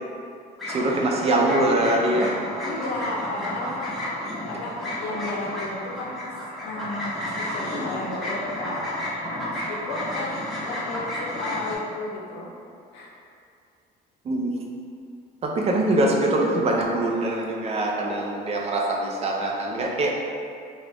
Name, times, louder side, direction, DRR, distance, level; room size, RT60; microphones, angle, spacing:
sound 1, 0.6-11.8, left 1 dB, ahead, 0.7 m, -32 dB
voice 1, 0.7-2.3 14.3-14.5 15.4-20.1, right 1 dB, 40° right, -1 dB, 0.4 m, -23 dB
voice 2, 2.6-3.9 4.5-6.2 6.6-8.9 9.3-12.5 12.9-13.1, left 2 dB, 75° left, -2 dB, 0.5 m, -33 dB
2.4 x 2.0 x 3.2 m, 2.3 s
cardioid pair, 110°, 17 cm